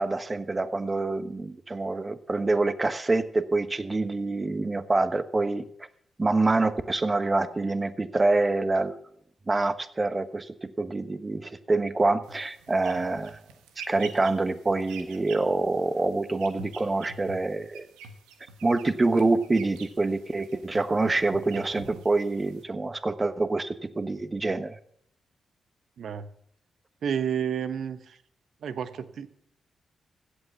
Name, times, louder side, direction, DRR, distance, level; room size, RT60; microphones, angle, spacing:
voice 1, 0.0-5.6 6.2-9.0 9.5-13.4 13.9-17.9 18.6-24.8, right 2 dB, 30° right, 13 dB, 1.2 m, -26 dB
sound 1, 12.2-22.6, right 4 dB, 90° right, 1.4 m, -47 dB
voice 2, 26.0-26.3 27.0-28.2 28.6-29.3, right 8 dB, 70° right, 13 dB, 1.0 m, -30 dB
16.0 x 8.5 x 5.9 m, 0.68 s
supercardioid pair, 45°, 0 cm